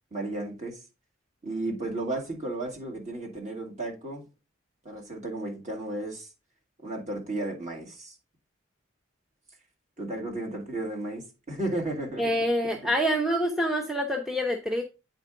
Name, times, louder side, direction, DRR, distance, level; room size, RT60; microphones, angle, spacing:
voice 1, 0.1-0.8 1.4-4.2 4.8-6.3 6.8-8.2 10.0-12.4 12.8-12.9, right 2 dB, 35° right, 2.1 m, -34 dB
voice 2, 12.2-14.8, equal, ahead, 0.6 m, -26 dB
8.6 x 4.5 x 3.7 m
head